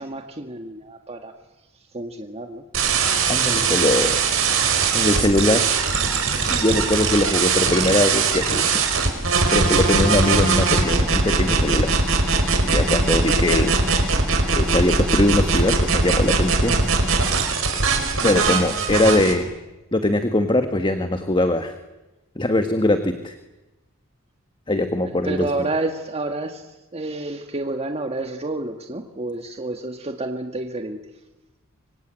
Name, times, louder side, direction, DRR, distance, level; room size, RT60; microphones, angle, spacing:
voice 1, 0.0-1.3 1.9-2.6 25.2-26.6 26.9-31.0, right 2 dB, 30° right, 5 dB, 1.7 m, -29 dB
sound 1, 2.7-19.3, right 4 dB, 70° right, 5.2 m, -20 dB
voice 2, 3.3-4.2 4.9-5.7 6.4-8.8 9.5-11.9 12.2-12.3 12.6-13.8 14.5-16.8 18.2-19.5 19.9-21.7 22.3-23.3 24.7-25.5, left 1 dB, 25° left, 7 dB, 1.5 m, -21 dB
26.5 x 24.5 x 9.0 m, 1.0 s
head